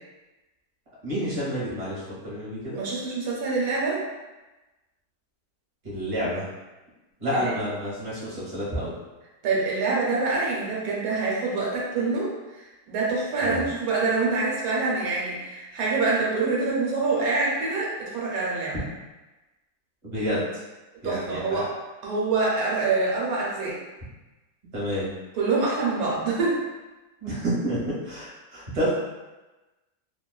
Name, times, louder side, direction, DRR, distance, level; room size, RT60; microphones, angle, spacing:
voice 1, 1.0-2.8 5.8-6.5 7.2-8.9 13.4-13.6 20.0-20.5 21.0-21.6 24.7-25.1 27.2-27.8 28.0-28.9, equal, 30° right, -8 dB, 0.8 m, -29 dB
voice 2, 2.7-4.0 7.3-7.4 9.4-18.7 21.0-21.7 22.0-23.8 25.3-26.6, right 3 dB, 80° right, -5 dB, 1.1 m, -26 dB
2.4 x 2.3 x 2.2 m, 1.1 s
omnidirectional pair, 1.5 m